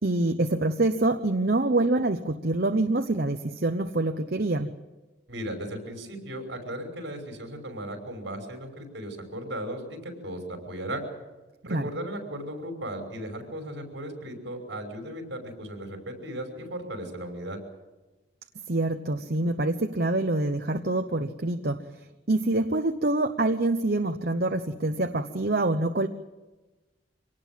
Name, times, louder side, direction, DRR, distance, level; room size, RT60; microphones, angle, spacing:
voice 1, 0.0-4.7 11.7-11.9 18.7-26.1, right 2 dB, 50° right, 7 dB, 0.9 m, -26 dB
voice 2, 5.3-11.0 11.6-17.6, right 1 dB, 65° right, 4 dB, 5.7 m, -36 dB
25.0 x 18.5 x 7.6 m, 1.2 s
head